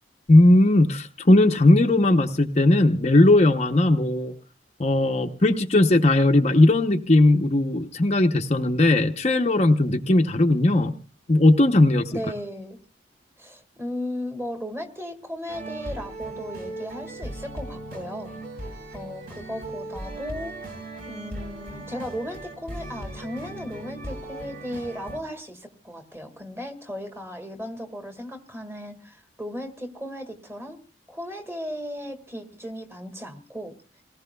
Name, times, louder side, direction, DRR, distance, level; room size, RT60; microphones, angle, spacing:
voice 1, 0.3-4.3 4.8-10.9 11.3-12.0, left 2 dB, 35° left, 5 dB, 0.8 m, -18 dB
voice 2, 12.1-12.8 13.4-18.4 18.9-20.6 21.1-30.8 31.1-34.0, equal, 15° right, 4 dB, 1.8 m, -36 dB
sound 1, 15.5-25.2, right 1 dB, 50° right, 4.2 m, -37 dB
28.0 x 18.5 x 2.3 m, 0.38 s
head